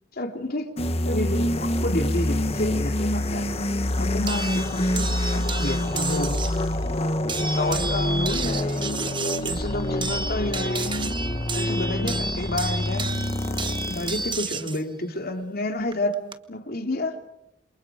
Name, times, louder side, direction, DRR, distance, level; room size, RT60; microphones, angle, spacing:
voice 1, 0.1-0.7 1.0-3.5 4.0-6.4 7.2-9.1 9.4-11.1 11.5-13.1 13.9-16.2 16.5-17.2, left 1 dB, 55° left, 5 dB, 3.1 m, -30 dB
sound 1, 0.8-14.4, left 1 dB, 35° left, 1.4 m, -26 dB
sound 2, 4.3-6.6 7.3-14.8 15.9-16.3, right 4 dB, 25° right, 1.3 m, -32 dB
28.0 x 28.0 x 5.1 m, 0.78 s
head